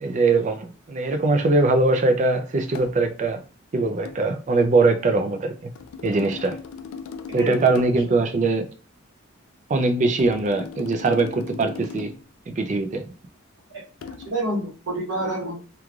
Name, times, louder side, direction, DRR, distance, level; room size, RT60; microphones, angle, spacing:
voice 1, 0.0-3.4 3.7-5.7 6.0-6.6 7.3-8.7 9.7-12.1 12.5-13.0, right 3 dB, 35° right, 0.3 m, -21 dB
sound 1, 2.7-3.0 4.1-4.3 5.8-8.1 10.2-12.3 14.0-14.3, left 6 dB, 70° left, 0.3 m, -38 dB
voice 2, 7.3-7.6 13.7-13.8 14.2-15.6, right 1 dB, 55° right, 1.1 m, -28 dB
3.1 x 2.3 x 2.3 m
head